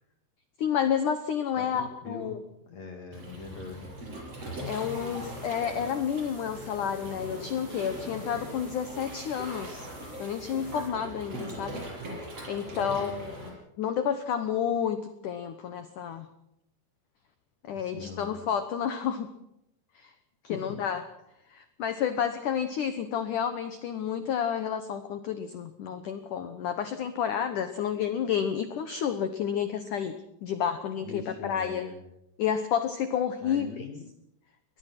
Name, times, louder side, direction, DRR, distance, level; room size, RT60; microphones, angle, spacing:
voice 1, 0.6-2.4 4.7-9.9 10.2-11.8 12.2-16.3 17.7-19.3 19.9-20.1 20.4-21.0 21.5-31.8 32.4-33.9, left 8 dB, 90° left, 9 dB, 1.8 m, -30 dB
voice 2, 1.5-2.4 2.6-4.0 12.7-13.3 17.7-18.4 20.4-20.8 31.0-32.0 33.4-34.1, left 4 dB, 45° left, 4 dB, 2.7 m, -42 dB
Waves surf, 3.1-13.5, right 1 dB, 30° right, 7.8 m, -40 dB
sound 1, 4.6-10.9, right 1 dB, 10° right, 2.2 m, -54 dB
23.5 x 20.0 x 6.0 m, 0.81 s
omnidirectional pair, 5.4 m